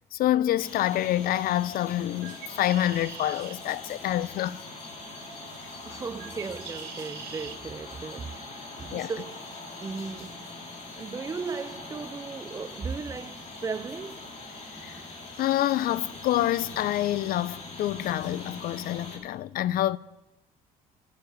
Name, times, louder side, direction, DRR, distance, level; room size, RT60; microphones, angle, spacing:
voice 1, 0.1-4.6 8.9-9.1 14.8-14.9 15.4-20.0, left 13 dB, 60° left, 0.4 m, -27 dB
sound 1, 0.6-19.2, left 2 dB, 40° left, 2.2 m, -42 dB
Bird, 2.1-7.6, right 9 dB, 75° right, 1.0 m, -46 dB
voice 2, 5.8-9.4 9.8-10.5 11.0-14.3, right 5 dB, 20° right, 0.4 m, -36 dB
7.8 x 6.7 x 7.3 m
cardioid pair, 110°, 17 cm